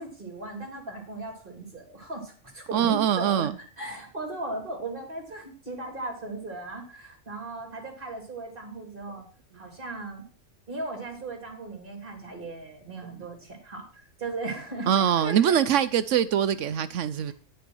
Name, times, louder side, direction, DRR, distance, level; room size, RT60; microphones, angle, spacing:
voice 1, 0.0-9.3 9.5-10.2 10.7-15.6 17.3-17.4, right 2 dB, 40° right, 3.3 m, -37 dB
voice 2, 2.7-3.5 14.9-17.3, right 9 dB, 70° right, 0.9 m, -23 dB
10.5 x 6.6 x 6.2 m
omnidirectional pair, 1.3 m